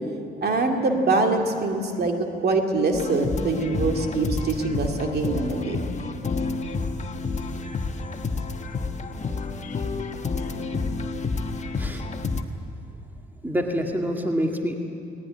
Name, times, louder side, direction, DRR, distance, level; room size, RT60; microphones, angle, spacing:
voice 1, 0.4-5.8, right 3 dB, 55° right, 3 dB, 2.4 m, -24 dB
sound 1, 2.9-12.4, left 4 dB, 35° left, 1.4 m, -29 dB
voice 2, 13.4-14.8, equal, 10° right, 2 dB, 2.1 m, -26 dB
19.0 x 18.5 x 9.7 m, 2.6 s
cardioid pair, 90°, 20 cm